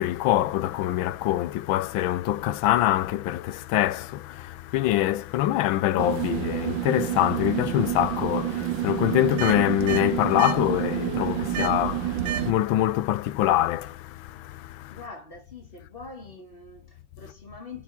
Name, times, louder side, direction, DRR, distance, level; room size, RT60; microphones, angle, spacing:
voice 1, 0.0-15.1, left 14 dB, 90° left, 1.4 m, -25 dB
sound 1, 6.0-12.5, right 11 dB, 80° right, 1.6 m, -28 dB
voice 2, 14.9-17.8, left 3 dB, 30° left, 2.2 m, -44 dB
7.6 x 5.4 x 3.6 m
omnidirectional pair, 2.1 m